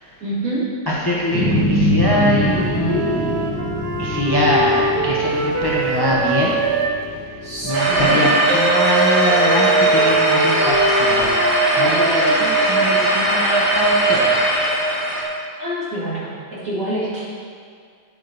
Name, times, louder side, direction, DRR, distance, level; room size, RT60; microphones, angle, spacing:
voice 1, 0.2-0.6 7.4-8.3 15.6-16.3 16.6-17.2, right 1 dB, 40° right, -8 dB, 2.9 m, -26 dB
voice 2, 0.9-3.4 4.0-6.6 7.6-11.5 11.8-14.3, left 1 dB, 20° left, -4 dB, 0.6 m, -22 dB
sound 1, 1.3-7.9, equal, 10° right, 1.1 m, -24 dB
Wind instrument woodwind instrument, 1.9-7.0 7.7-12.6, right 4 dB, 80° right, 1.6 m, -24 dB
sound 2, 7.7-15.2, right 1 dB, 60° right, 2.6 m, -18 dB
8.8 x 8.4 x 4.0 m, 2.1 s
omnidirectional pair, 2.1 m